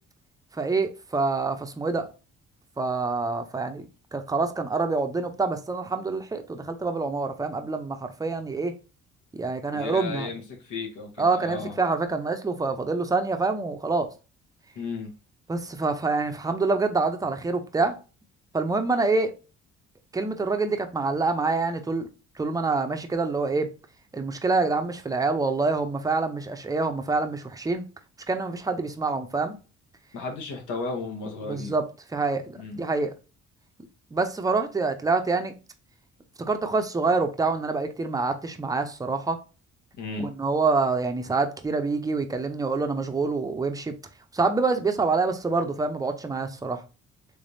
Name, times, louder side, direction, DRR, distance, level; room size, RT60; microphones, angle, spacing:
voice 1, 0.5-2.1 2.8-8.7 9.3-10.3 11.2-14.1 15.5-18.0 18.5-19.4 20.1-22.1 22.4-23.7 24.1-27.8 28.3-29.6 31.4-31.8 32.1-33.1 34.1-35.5 36.4-39.4 40.2-43.9 44.3-46.8, right 3 dB, 10° right, 0.5 m, -26 dB
voice 2, 9.7-11.7 14.7-15.1 30.1-31.7 32.6-32.8 40.0-40.3, left 4 dB, 75° left, 1.2 m, -34 dB
3.4 x 3.3 x 2.6 m
cardioid pair, 90°, 30 cm